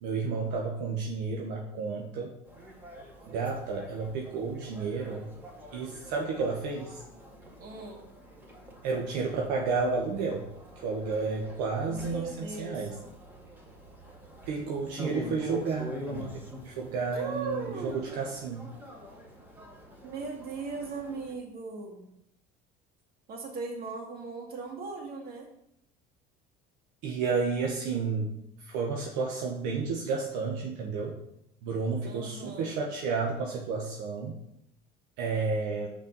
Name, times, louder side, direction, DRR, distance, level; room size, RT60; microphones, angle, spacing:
voice 1, 0.0-2.3 3.3-5.3 5.7-7.0 8.8-10.4 10.8-12.9 14.5-18.7 27.0-28.3 28.6-31.2 31.6-34.4 35.2-35.9, right 4 dB, 75° right, 0 dB, 1.1 m, -31 dB
sound 1, 2.5-21.3, equal, 10° right, 1.9 m, -45 dB
voice 2, 7.6-8.0 11.9-12.9 17.1-18.0 20.0-22.1 23.3-25.5 32.0-32.8, right 4 dB, 50° right, 1 dB, 1.9 m, -38 dB
5.9 x 4.4 x 5.3 m, 0.77 s
supercardioid pair, 85°, 20 cm